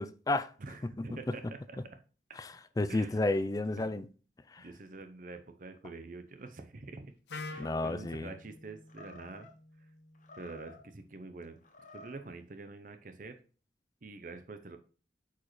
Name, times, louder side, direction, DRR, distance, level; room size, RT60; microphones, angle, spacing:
voice 1, 0.0-0.5 0.8-1.2 2.4-4.1 4.5-4.6 7.6-8.3, left 2 dB, 20° left, 0.3 m, -32 dB
voice 2, 0.6-1.8 2.9-3.2 3.7-3.9 4.6-7.1 7.4-9.5 10.4-11.6 11.9-13.4 14.0-14.8, right 3 dB, 50° right, 0.6 m, -46 dB
Wind instrument woodwind instrument, 7.3-11.2, left 3 dB, 80° left, 0.7 m, -48 dB
Animal, 7.5-8.2 8.9-9.5 10.1-10.9 11.6-12.3, left 2 dB, 45° left, 1.1 m, -53 dB
8.1 x 5.0 x 3.1 m
head